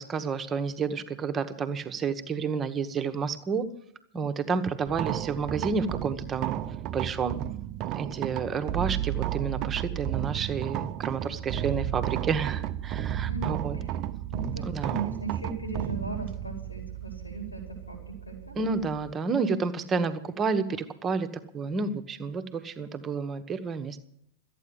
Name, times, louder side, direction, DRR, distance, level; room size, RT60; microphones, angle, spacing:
voice 1, 0.0-3.7 4.1-6.6 6.9-7.4 7.9-13.8 14.6-15.0 18.5-21.3 21.5-24.0, right 5 dB, 25° right, 8 dB, 1.3 m, -30 dB
sound 1, 4.9-19.1, right 12 dB, 40° right, 0.6 m, -33 dB
voice 2, 13.3-13.9 14.3-18.6, right 3 dB, 85° left, 3 dB, 4.9 m, -37 dB
13.5 x 9.2 x 9.7 m, 0.73 s
figure-of-eight pair, 90°, 0 cm